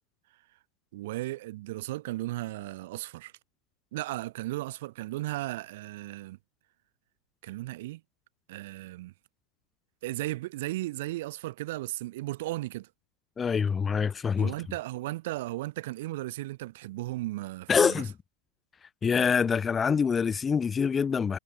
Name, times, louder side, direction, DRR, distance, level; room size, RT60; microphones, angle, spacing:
voice 1, 0.9-3.3 3.9-6.4 7.4-8.0 8.5-9.1 10.0-12.9 14.4-18.1, right 17 dB, 55° right, 3.3 m, -35 dB
voice 2, 13.4-14.5 17.7-18.1 19.0-21.4, left 6 dB, 15° left, 0.4 m, -25 dB
hypercardioid pair, 150°, 0 cm